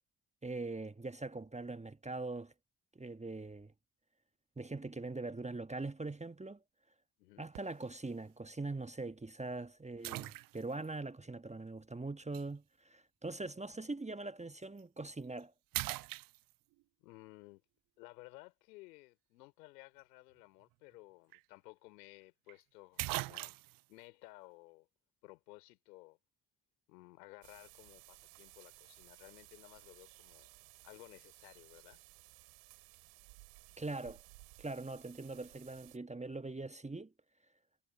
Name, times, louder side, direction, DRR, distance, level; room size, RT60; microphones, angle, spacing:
voice 1, 0.4-2.5 2.9-3.7 4.6-6.6 7.4-15.5 33.8-34.2 34.6-37.1, right 3 dB, 15° right, 1.3 m, -42 dB
sound 1, 7.5-7.9 8.5-8.6 10.0-10.9 12.3-12.5 14.6-14.8 15.2-15.4 15.7-16.8 20.9-21.0 21.3-21.4 22.5-22.6 23.0-23.8, right 19 dB, 45° right, 0.4 m, -40 dB
voice 2, 17.0-17.6 18.0-23.6 23.9-24.9 25.2-26.2 26.9-30.5 30.8-32.0, left 21 dB, 80° left, 4.6 m, -56 dB
sound 2, 27.4-36.0, right 38 dB, 75° right, 4.2 m, -59 dB
figure-of-eight pair, 40°, 48 cm